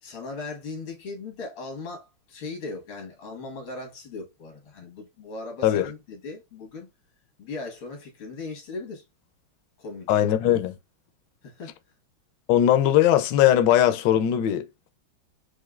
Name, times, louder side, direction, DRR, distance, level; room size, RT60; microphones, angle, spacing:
voice 1, 0.0-6.9 7.4-9.0 9.8-10.1 11.4-11.7, left 3 dB, 85° left, 2.3 m, -38 dB
voice 2, 10.1-10.8 12.5-14.6, left 11 dB, 70° left, 1.2 m, -19 dB
6.4 x 2.7 x 2.4 m
omnidirectional pair, 2.3 m